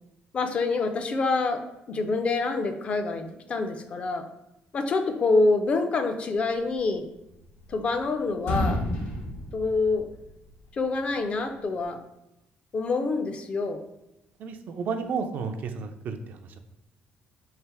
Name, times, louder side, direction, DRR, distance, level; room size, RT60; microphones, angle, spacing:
voice 1, 0.3-4.3 4.7-7.1 7.7-8.8 9.5-10.1 10.7-12.0 12.7-13.8, left 3 dB, 35° left, 7 dB, 0.4 m, -26 dB
sound 1, 7.2-8.1 8.4-10.5, left 1 dB, 85° left, 1.2 m, -31 dB
voice 2, 14.4-16.6, right 5 dB, 55° right, 7 dB, 0.4 m, -32 dB
3.3 x 2.9 x 4.6 m, 0.88 s
cardioid pair, 150°, 4 cm